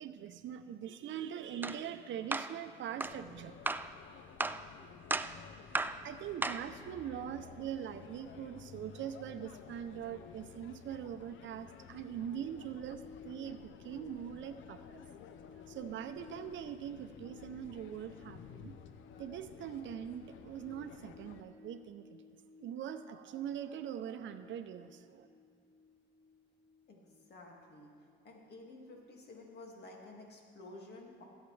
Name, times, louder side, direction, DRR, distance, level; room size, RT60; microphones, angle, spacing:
voice 1, 0.0-3.5 6.0-15.0 15.7-18.7 19.2-22.2 22.6-25.3, right 9 dB, 70° right, 10 dB, 0.6 m, -42 dB
sound 1, 1.6-1.8 2.3-2.5 3.0-3.2 3.7-3.9 4.4-4.6 5.1-5.4 5.8-6.0 6.4-6.7, right 3 dB, 10° right, 0.3 m, -34 dB
sound 2, 3.0-21.4, left 7 dB, 75° left, 0.6 m, -54 dB
sound 3, 12.5-29.1 29.4-29.5, left 6 dB, 30° left, 2.2 m, -58 dB
voice 2, 26.9-27.9 28.2-31.2, left 2 dB, 55° left, 0 dB, 2.1 m, -52 dB
18.5 x 8.1 x 3.3 m, 2.3 s
cardioid pair, 90°, 20 cm